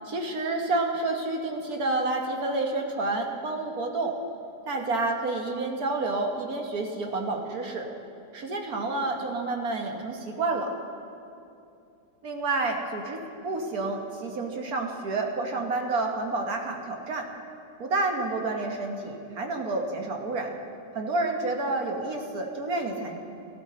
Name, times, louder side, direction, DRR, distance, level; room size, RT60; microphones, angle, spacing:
voice 1, 0.0-4.1 4.7-7.9 8.3-10.7 12.2-17.3 17.8-20.5 20.9-23.2, right 2 dB, 60° right, 2 dB, 1.6 m, -29 dB
17.0 x 14.0 x 4.3 m, 2.7 s
omnidirectional pair, 1.9 m